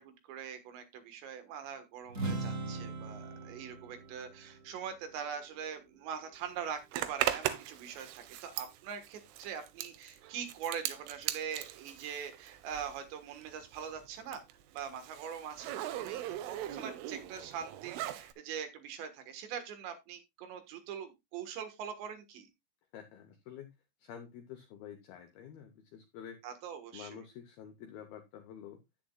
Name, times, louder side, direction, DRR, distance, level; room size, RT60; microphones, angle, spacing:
voice 1, 0.0-14.4 14.7-22.5 26.4-27.1, right 7 dB, 70° right, 8 dB, 3.5 m, -43 dB
sound 1, 2.1-5.8, right 3 dB, 45° right, 0.9 m, -40 dB
Zipper (clothing), 6.9-13.1 13.4-18.3, right 13 dB, 85° right, 3.4 m, -39 dB
voice 2, 22.9-23.7 24.0-26.4 26.9-28.8, left 9 dB, 80° left, 7 dB, 2.2 m, -49 dB
10.5 x 10.5 x 2.3 m, 0.21 s
omnidirectional pair, 5.6 m